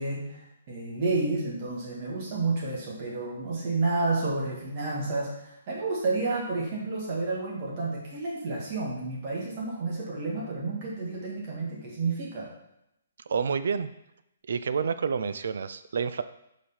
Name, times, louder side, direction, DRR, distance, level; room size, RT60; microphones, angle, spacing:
voice 1, 0.0-12.5, right 3 dB, 30° right, -3 dB, 1.7 m, -30 dB
voice 2, 13.3-13.9 14.5-16.2, right 6 dB, 60° right, 13 dB, 0.4 m, -28 dB
5.0 x 4.5 x 5.6 m, 0.82 s
hypercardioid pair, 175°, 0 cm